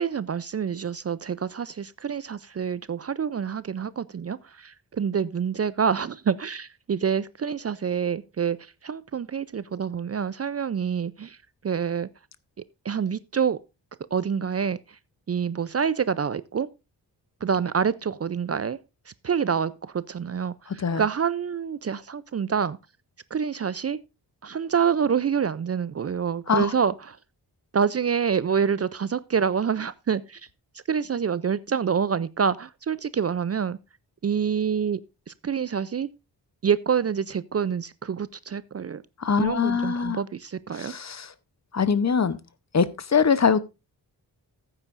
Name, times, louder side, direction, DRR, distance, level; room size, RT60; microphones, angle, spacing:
voice 1, 0.0-11.4 11.6-12.1 12.8-13.6 14.1-15.0 15.3-16.7 17.4-18.8 19.1-22.8 23.3-24.0 24.4-27.2 27.7-30.5 30.9-33.8 34.2-35.0 35.3-36.1 36.6-39.0 39.4-41.0, right 7 dB, 40° right, 0.4 m, -27 dB
voice 2, 39.2-40.2 40.7-41.3 41.7-42.4 42.7-43.6, left 6 dB, 40° left, 0.8 m, -23 dB
14.5 x 8.9 x 2.5 m
wide cardioid pair, 100°, 40 cm